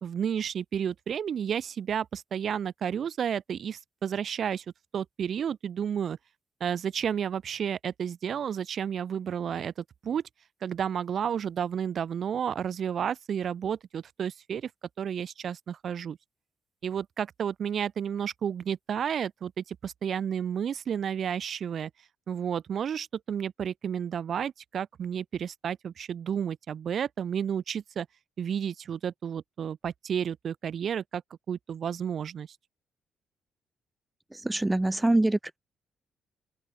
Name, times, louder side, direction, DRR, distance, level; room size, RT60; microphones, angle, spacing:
voice 1, 0.0-4.6 4.9-6.2 6.6-9.7 10.0-10.2 10.6-14.7 15.0-16.2 16.8-21.9 22.3-28.1 28.4-31.2 31.5-32.5, right 8 dB, 55° right, 1.2 m, -31 dB
voice 2, 34.3-35.6, right 2 dB, 10° right, 0.7 m, -25 dB
open air
cardioid pair, 90°, 0 cm